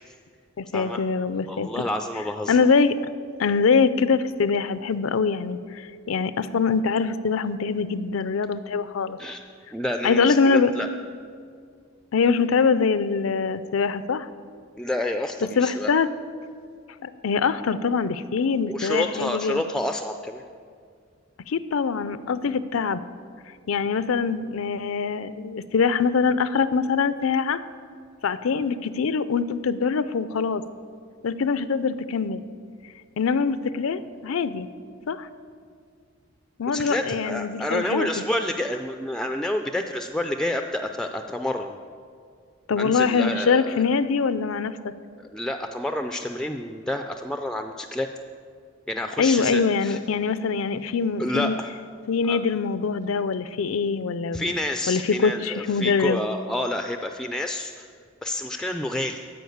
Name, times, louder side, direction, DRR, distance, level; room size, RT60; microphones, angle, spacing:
voice 1, 0.6-1.8 2.5-2.9 3.4-9.2 10.0-10.7 12.1-14.3 15.6-16.1 17.0-19.6 21.5-23.0 23.7-27.6 28.2-30.6 31.2-32.4 33.2-34.7 35.1-35.3 36.6-38.1 42.7-44.7 49.2-51.6 52.1-54.5 54.9-56.2, left 5 dB, 80° left, 14 dB, 0.5 m, -23 dB
voice 2, 1.5-2.6 9.2-9.4 9.7-10.9 14.8-15.9 18.7-20.4 36.7-41.8 42.8-43.8 45.2-48.1 48.9-50.0 51.2-51.7 52.2-52.4 54.3-57.9 58.2-59.3, left 1 dB, 5° left, 5 dB, 0.3 m, -29 dB
13.0 x 5.0 x 7.9 m, 2.2 s
head